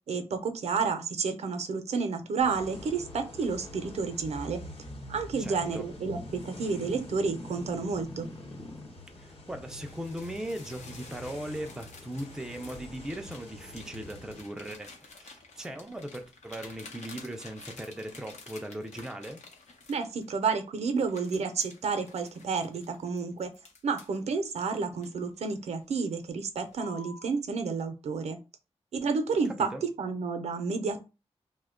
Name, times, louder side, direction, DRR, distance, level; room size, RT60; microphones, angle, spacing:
voice 1, 0.1-4.6 5.1-8.3 19.9-23.5 23.8-28.4 28.9-31.0, right 5 dB, 70° right, 0.5 m, -30 dB
sound 1, 2.4-14.4, left 2 dB, 60° left, 1.0 m, -48 dB
sound 2, 2.4-9.4, left 1 dB, 35° left, 0.6 m, -45 dB
voice 2, 5.4-5.9 9.2-19.4 29.6-29.8, right 1 dB, 5° right, 0.3 m, -39 dB
sound 3, 9.7-20.5 21.0-24.2 24.7-25.6 26.0-26.3 26.7-27.3, left 3 dB, 85° left, 0.8 m, -51 dB
2.7 x 2.1 x 3.6 m
wide cardioid pair, 175°, 11 cm